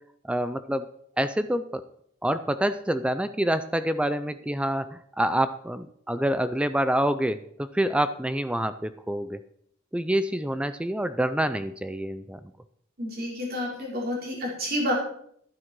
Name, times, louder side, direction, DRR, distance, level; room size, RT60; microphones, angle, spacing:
voice 1, 0.3-0.9 1.2-1.8 2.2-9.4 9.9-12.4, right 1 dB, 5° right, 12 dB, 0.4 m, -27 dB
voice 2, 13.0-14.9, equal, 50° right, -3 dB, 5.0 m, -29 dB
11.5 x 9.8 x 4.6 m, 0.67 s
head